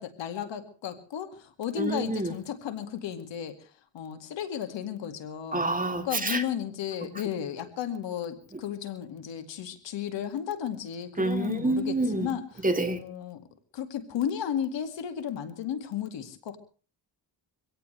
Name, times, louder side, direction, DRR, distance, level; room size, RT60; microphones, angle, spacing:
voice 1, 0.0-3.5 3.9-5.7 6.0-13.4 13.7-16.6, left 9 dB, 90° left, 7 dB, 2.3 m, -34 dB
voice 2, 1.8-2.3 5.5-6.4 11.2-12.3 12.6-13.0, right 2 dB, 20° right, 6 dB, 2.7 m, -27 dB
24.0 x 17.5 x 3.3 m, 0.38 s
cardioid pair, 85°, 43 cm